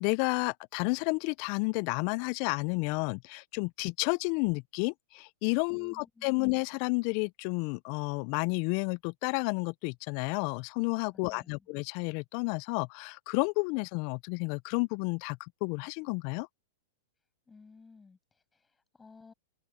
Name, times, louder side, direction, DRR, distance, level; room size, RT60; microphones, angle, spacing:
voice 1, 0.0-16.5, left 31 dB, 50° left, 0.4 m, -31 dB
voice 2, 5.7-6.5 11.1-11.7 17.5-19.3, left 4 dB, 15° left, 7.3 m, -57 dB
hypercardioid pair, 120°, 0 cm